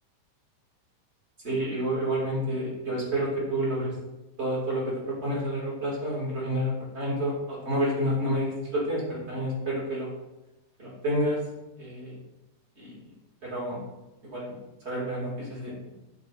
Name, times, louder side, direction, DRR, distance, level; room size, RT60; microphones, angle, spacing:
voice 1, 1.4-3.9 4.4-10.1 10.8-11.5 11.8-12.2 12.8-13.0 13.4-13.8 14.3-14.5 14.8-15.9, equal, 25° right, -5 dB, 1.7 m, -29 dB
11.0 x 4.6 x 4.8 m, 0.98 s
omnidirectional pair, 5.2 m